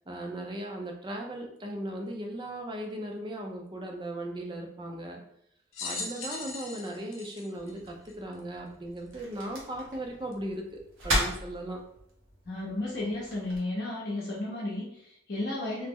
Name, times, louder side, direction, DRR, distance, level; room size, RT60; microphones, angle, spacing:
voice 1, 0.1-5.2 5.8-11.8, right 1 dB, 25° right, 1 dB, 0.4 m, -37 dB
sound 1, 5.7-8.4 9.1-9.2 10.3-10.4, left 4 dB, 90° left, 0.6 m, -39 dB
sound 2, 7.5-13.6, equal, 85° right, 1.0 m, -37 dB
voice 2, 12.5-15.9, left 2 dB, 55° left, -5 dB, 0.7 m, -33 dB
2.9 x 2.0 x 3.5 m, 0.74 s
head